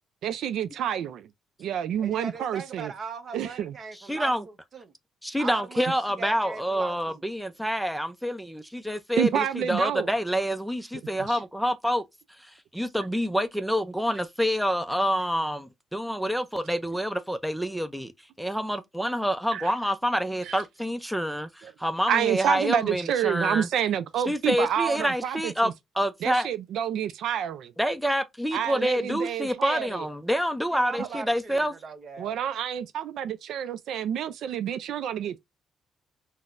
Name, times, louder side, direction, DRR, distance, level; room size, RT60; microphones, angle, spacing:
voice 1, 0.2-1.3 1.6-2.9 3.3-3.7 9.2-10.1 11.2-11.4 19.5-19.7 20.4-20.6 21.6-21.7 22.1-25.7 26.2-27.7 28.5-30.0 31.0-31.1 32.2-35.4, right 9 dB, 75° right, 0.3 m, -28 dB
voice 2, 2.0-4.9 5.4-7.2 30.7-32.3, right 5 dB, 45° right, 0.7 m, -39 dB
voice 3, 4.1-4.4 5.2-12.0 12.4-18.1 18.4-23.7 24.3-26.5 27.8-31.7, equal, ahead, 0.4 m, -27 dB
4.0 x 2.0 x 2.4 m
cardioid pair, 125°, 0 cm